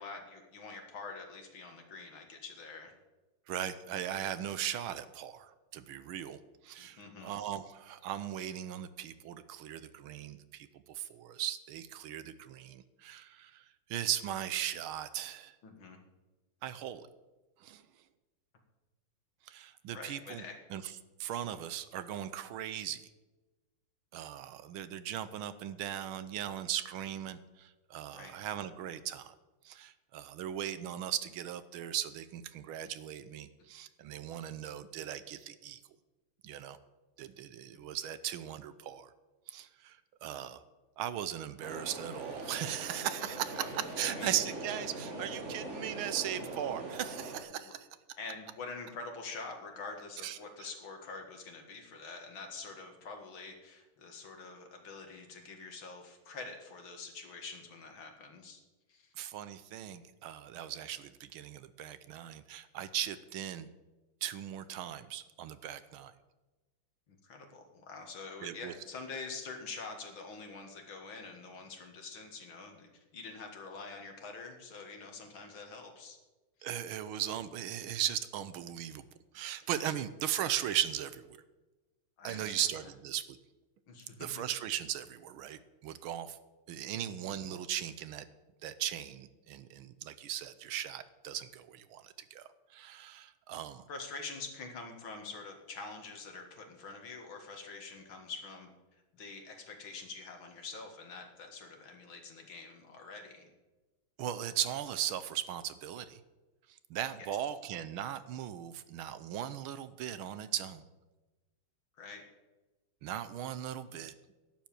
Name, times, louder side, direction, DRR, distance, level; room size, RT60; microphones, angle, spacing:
voice 1, 0.0-2.9 6.8-7.4 15.6-16.0 19.9-20.6 28.1-28.4 37.7-37.8 43.6-44.4 47.5-47.8 48.2-58.6 58.9-59.1 67.2-76.2 76.6-76.7 82.2-82.9 83.9-84.4 86.9-87.1 93.9-98.7 99.1-103.5 112.0-112.2, left 4 dB, 65° left, 3 dB, 2.7 m, -46 dB
voice 2, 3.5-13.6 13.9-15.6 16.6-17.1 17.6-17.8 19.5-20.4 20.7-20.8 21.2-23.0 24.1-29.3 29.6-35.8 36.4-36.8 37.2-39.1 39.5-40.6 41.0-47.9 50.2-50.7 59.2-63.7 64.2-66.1 68.4-68.7 76.6-79.0 79.3-81.4 82.2-83.4 84.2-86.4 86.7-88.2 88.6-93.8 104.2-106.2 106.9-110.8 113.0-114.1, right 11 dB, 75° right, 14 dB, 1.5 m, -38 dB
sound 1, 41.6-47.4, right 2 dB, 35° right, 1.9 m, -42 dB
11.5 x 7.4 x 8.8 m, 1.1 s
omnidirectional pair, 2.4 m